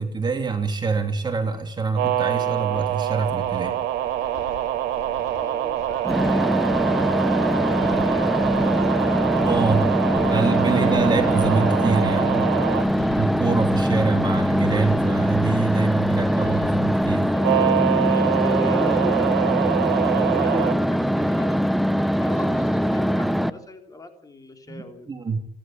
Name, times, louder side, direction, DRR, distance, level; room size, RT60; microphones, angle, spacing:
voice 1, 0.0-3.8 9.4-9.9 10.3-12.5 13.2-17.3 24.7-25.4, right 4 dB, 25° right, 5 dB, 2.9 m, -25 dB
sound 1, 1.9-12.9 17.4-20.7, right 12 dB, 85° right, 2.4 m, -25 dB
sound 2, 2.8-17.1, left 9 dB, 85° left, 2.8 m, -41 dB
voice 2, 5.3-9.5 10.1-11.1 13.9-14.1 17.3-25.1, left 2 dB, 20° left, 5 dB, 3.7 m, -37 dB
sound 3, 6.0-23.5, equal, ahead, 0.9 m, -22 dB
28.0 x 11.5 x 8.9 m, 0.67 s
cardioid pair, 110°, 17 cm